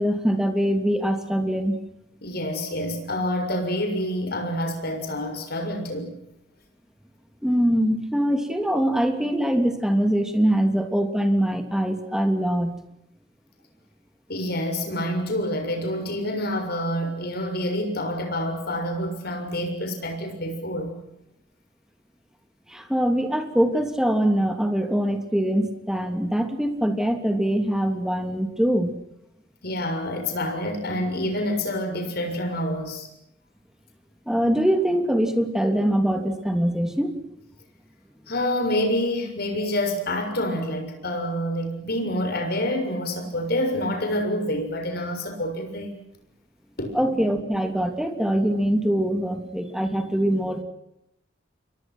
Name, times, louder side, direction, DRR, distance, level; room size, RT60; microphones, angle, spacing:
voice 1, 0.0-1.8 7.4-12.8 22.7-29.0 34.3-37.1 46.9-50.6, equal, 5° right, 6 dB, 2.9 m, -23 dB
voice 2, 2.2-6.1 14.3-20.9 29.6-33.1 38.3-46.0 46.8-47.0, left 1 dB, 55° left, 5 dB, 7.0 m, -27 dB
29.5 x 24.0 x 6.2 m, 0.82 s
head